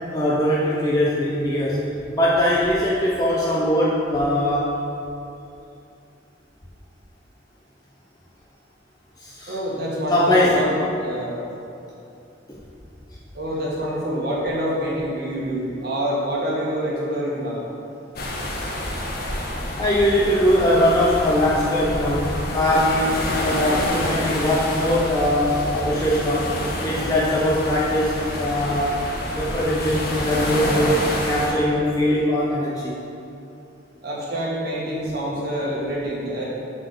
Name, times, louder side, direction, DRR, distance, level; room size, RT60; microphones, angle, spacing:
voice 1, 0.0-4.7 9.2-9.6 10.1-10.6 12.5-12.6 19.8-26.5 26.8-29.0 29.3-33.0, left 1 dB, 20° left, -6 dB, 0.7 m, -21 dB
voice 2, 9.5-10.7 11.0-11.4 13.3-17.7 34.0-36.4, equal, 60° right, -5 dB, 1.9 m, -26 dB
sound 1, 18.2-31.5, left 1 dB, 55° left, 1.2 m, -28 dB
7.6 x 4.5 x 6.6 m, 2.7 s
head